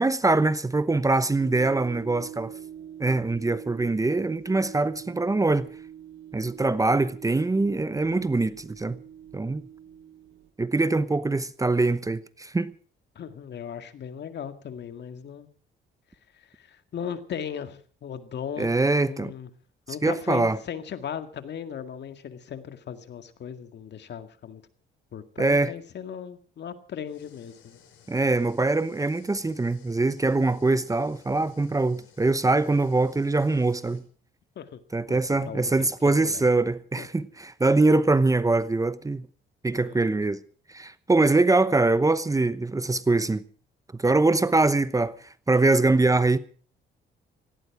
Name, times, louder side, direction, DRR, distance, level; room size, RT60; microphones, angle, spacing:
voice 1, 0.0-2.5 3.0-5.7 6.3-9.0 9.3-9.7 10.6-12.7 18.6-19.3 20.0-20.6 25.4-25.7 28.1-34.0 34.9-39.3 39.6-40.4 40.7-43.4 44.0-46.4, right 3 dB, 15° right, 0.9 m, -23 dB
sound 1, 1.4-10.5, right 10 dB, 75° right, 1.4 m, -44 dB
voice 2, 13.2-15.5 16.3-18.7 19.0-19.5 19.9-24.6 25.1-27.8 34.6-34.8 35.1-36.4 37.0-37.1 39.7-40.0, left 8 dB, 60° left, 2.0 m, -37 dB
sound 2, 27.1-34.0, left 8 dB, 90° left, 4.9 m, -57 dB
18.0 x 17.0 x 4.8 m
cardioid pair, 90°, 20 cm